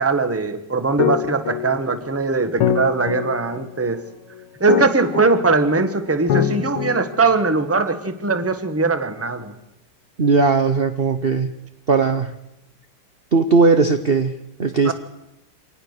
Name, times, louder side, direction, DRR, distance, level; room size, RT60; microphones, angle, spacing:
voice 1, 0.0-4.0 4.6-9.5 14.8-14.9, right 4 dB, 10° right, 9 dB, 0.9 m, -20 dB
sound 1, 1.0-7.7, left 9 dB, 80° left, 2.0 m, -25 dB
voice 2, 10.2-11.6 11.9-12.3 13.3-14.9, right 4 dB, 45° right, 9 dB, 0.7 m, -18 dB
25.0 x 19.0 x 6.7 m, 0.90 s
omnidirectional pair, 2.4 m